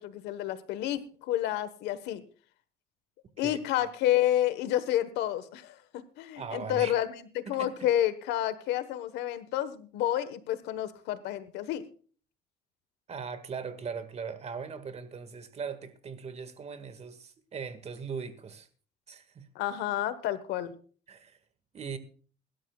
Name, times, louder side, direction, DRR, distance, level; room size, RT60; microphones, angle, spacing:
voice 1, 0.0-2.2 3.4-7.1 7.3-11.8 19.5-20.8, left 12 dB, 90° left, 1.3 m, -30 dB
voice 2, 3.4-3.9 6.3-7.0 7.5-7.7 13.1-18.7 19.1-19.5 21.1-21.4 21.7-22.0, right 6 dB, 40° right, 1.8 m, -39 dB
23.0 x 12.5 x 2.3 m
cardioid pair, 110°, 17 cm